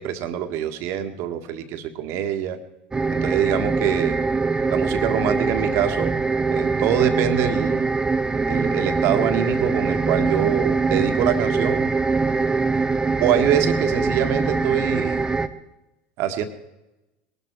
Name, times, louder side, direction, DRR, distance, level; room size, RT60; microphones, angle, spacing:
voice 1, 0.0-2.6 3.1-4.2 4.7-6.2 6.4-7.9 8.5-11.9 13.2-15.2 16.2-16.4, right 9 dB, 60° right, 8 dB, 1.8 m, -24 dB
sound 1, 2.9-15.5, right 4 dB, 15° right, 1.0 m, -23 dB
20.5 x 12.5 x 4.7 m, 0.99 s
hypercardioid pair, 85°, 5 cm